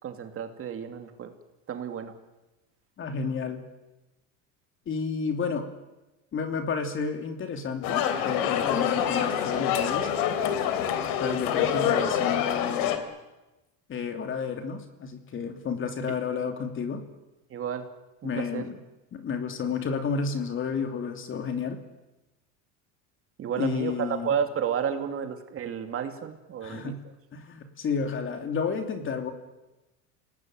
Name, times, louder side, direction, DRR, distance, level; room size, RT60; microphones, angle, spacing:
voice 1, 0.0-1.3 1.7-2.1 17.5-17.9 18.2-18.6 23.4-27.0, right 8 dB, 35° right, 7 dB, 2.5 m, -31 dB
voice 2, 3.0-3.6 4.9-5.7 6.3-10.1 11.2-13.0 13.9-17.0 18.2-18.8 19.1-21.8 23.6-24.3 26.6-27.0 27.3-29.3, left 5 dB, 30° left, 6 dB, 3.0 m, -31 dB
sound 1, 7.8-13.0, left 9 dB, 60° left, 3.4 m, -26 dB
28.5 x 18.5 x 9.3 m, 1.0 s
supercardioid pair, 135°, 39 cm